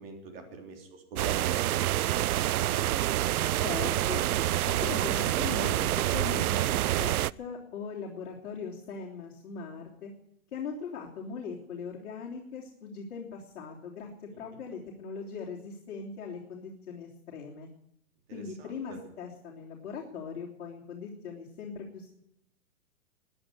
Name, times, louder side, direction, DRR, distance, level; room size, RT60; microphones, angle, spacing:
voice 1, 0.0-1.3 14.3-14.6 18.3-19.0, right 4 dB, 40° right, 4 dB, 3.4 m, -46 dB
sound 1, 1.2-7.3, right 14 dB, 80° right, 0.5 m, -27 dB
voice 2, 3.6-4.2 4.6-10.1 10.5-17.7 18.3-22.1, left 5 dB, 55° left, -3 dB, 3.4 m, -40 dB
14.5 x 9.8 x 9.6 m, 0.78 s
hypercardioid pair, 165°, 43 cm